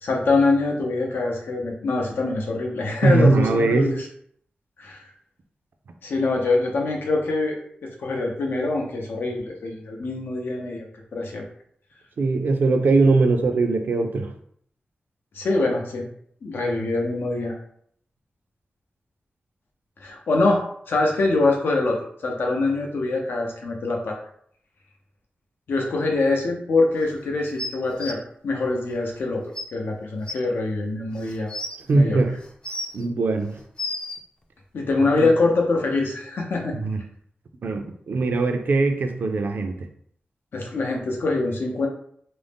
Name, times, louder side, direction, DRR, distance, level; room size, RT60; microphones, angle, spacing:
voice 1, 0.0-4.1 4.8-5.0 6.0-10.9 11.1-11.5 15.3-16.1 16.4-17.5 20.0-24.2 25.7-29.4 29.7-31.5 31.9-32.2 34.7-36.7 40.5-41.9, left 3 dB, 90° left, 0 dB, 0.6 m, -24 dB
voice 2, 3.0-3.9 12.2-14.3 31.9-32.3 32.9-33.6 35.0-35.3 36.7-37.0 37.6-39.9, right 3 dB, 65° right, 5 dB, 0.4 m, -21 dB
sound 1, 27.6-28.1 29.2-29.3 29.5-29.6 30.3-30.4 31.1-31.8 32.4-33.0 33.5-34.2 35.2-35.3, left 1 dB, 25° left, 0.4 m, -32 dB
2.5 x 2.0 x 3.4 m, 0.64 s
wide cardioid pair, 140°, 3 cm